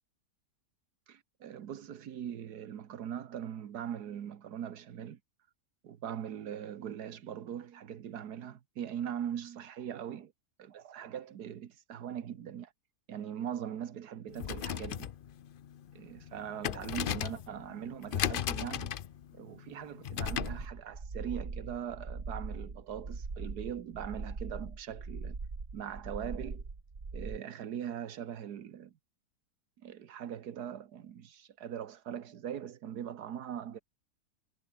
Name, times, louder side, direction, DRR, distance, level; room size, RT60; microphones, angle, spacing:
voice 1, 1.1-5.2 5.8-10.3 10.7-12.7 13.1-15.1 15.9-19.0 19.3-25.4 25.7-26.6 27.1-28.9 29.8-33.8, right 9 dB, 80° right, 1.7 m, -41 dB
sound 1, 14.3-20.7, left 10 dB, 80° left, 0.4 m, -37 dB
sound 2, 20.2-27.4, right 4 dB, 40° right, 2.4 m, -41 dB
omnidirectional pair, 1.7 m